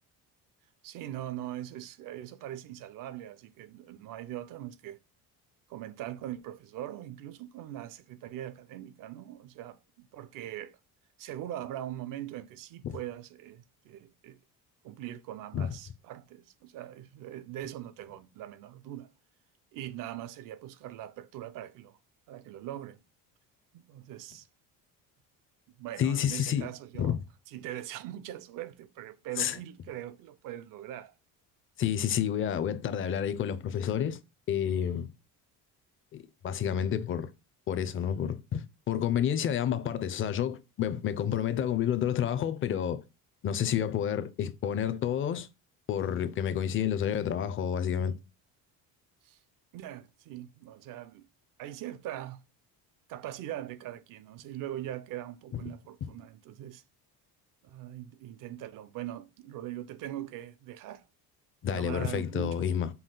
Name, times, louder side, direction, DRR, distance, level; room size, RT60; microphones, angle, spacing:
voice 1, 0.8-5.0 5.7-10.8 11.2-14.4 14.8-19.1 19.7-22.0 22.3-23.0 23.7-24.5 25.8-27.2 27.5-31.1 49.2-49.4 49.7-51.3 51.6-52.4 53.1-56.8 57.6-61.0 61.7-62.7, right 12 dB, 60° right, 0.6 m, -41 dB
voice 2, 26.0-26.7 27.0-27.2 29.4-29.6 31.8-34.2 34.5-35.1 36.1-37.3 37.7-43.0 43.4-45.5 45.9-48.2 61.6-62.9, left 9 dB, 35° left, 0.5 m, -29 dB
5.5 x 2.4 x 3.7 m
cardioid pair, 135°, 36 cm